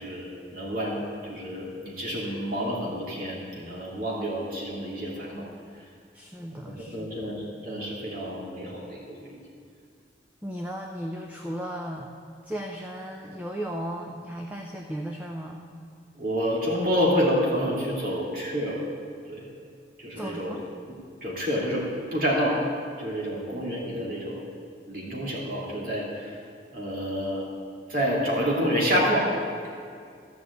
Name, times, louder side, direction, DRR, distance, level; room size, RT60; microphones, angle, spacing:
voice 1, 0.0-5.5 6.6-9.4 16.2-18.8 19.3-19.5 20.0-20.6 20.9-21.9 22.1-22.6 23.0-24.4 24.9-26.4 26.7-27.4 27.9-29.3, equal, 50° right, -4 dB, 2.9 m, -28 dB
voice 2, 6.1-7.1 10.4-12.1 12.4-15.6 20.1-20.6, equal, 10° right, 1 dB, 0.7 m, -35 dB
13.5 x 6.1 x 8.3 m, 2.3 s
head